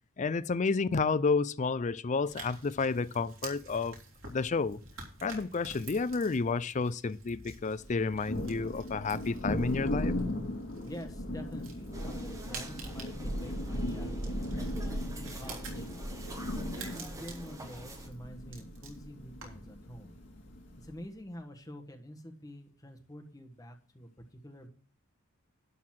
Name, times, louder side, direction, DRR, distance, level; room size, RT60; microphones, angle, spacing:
voice 1, 0.2-4.0 4.2-4.8 5.2-10.1, left 4 dB, 35° left, 0.4 m, -30 dB
sound 1, 2.2-19.7, right 4 dB, 65° right, 3.3 m, -50 dB
Thunder, 7.8-21.0, equal, 55° left, 2.1 m, -37 dB
voice 2, 10.8-14.2 14.5-15.9 16.7-20.1 20.8-24.7, equal, 15° left, 1.4 m, -47 dB
sound 2, 11.9-18.1, right 1 dB, 15° right, 1.3 m, -47 dB
11.5 x 4.1 x 7.6 m
head